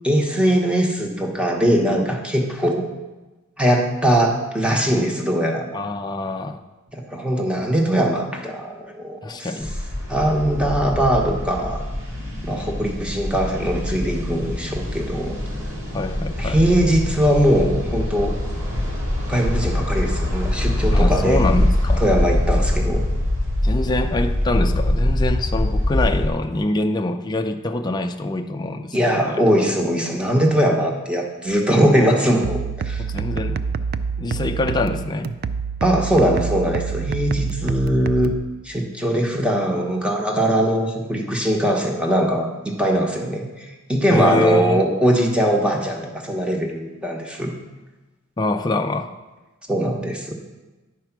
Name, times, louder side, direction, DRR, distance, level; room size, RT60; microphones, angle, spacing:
voice 1, 0.0-2.9 3.6-5.7 6.9-9.5 10.1-11.8 12.4-15.3 16.4-18.3 19.3-21.4 22.0-23.0 28.9-33.0 35.8-38.3 38.6-47.5 49.7-50.3, equal, 5° right, 1 dB, 1.0 m, -21 dB
voice 2, 5.7-6.6 9.2-9.8 15.9-16.6 20.9-22.0 23.6-29.4 33.0-33.6 34.2-35.3 44.1-44.8 48.4-49.1, left 2 dB, 20° left, 5 dB, 0.4 m, -25 dB
sound 1, 9.6-26.3, left 1 dB, 65° right, 1.9 m, -23 dB
sound 2, 32.4-38.4, right 5 dB, 45° right, 0.3 m, -27 dB
10.0 x 4.6 x 5.9 m, 1.1 s
head